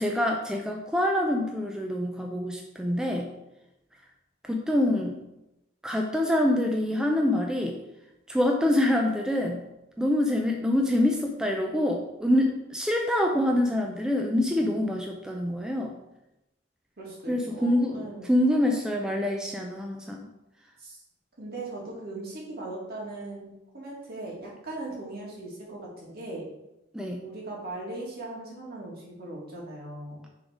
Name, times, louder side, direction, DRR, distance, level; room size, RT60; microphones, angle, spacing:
voice 1, 0.0-3.3 4.4-5.2 5.8-7.8 8.3-9.6 10.0-16.0 17.3-20.3 26.9-27.3, left 1 dB, 5° right, 1 dB, 0.4 m, -26 dB
voice 2, 17.0-18.4 20.8-21.0 21.4-23.5 23.7-26.4 27.2-30.2, right 2 dB, 55° right, -4 dB, 2.0 m, -39 dB
6.1 x 3.7 x 4.9 m, 0.92 s
head